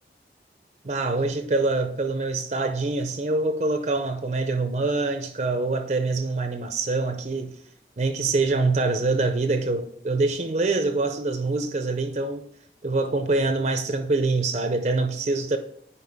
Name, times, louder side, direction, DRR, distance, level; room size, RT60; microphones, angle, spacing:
voice 1, 0.8-7.6 8.0-12.4 12.8-15.6, right 3 dB, 40° right, 0.5 m, -25 dB
9.7 x 4.7 x 3.5 m
head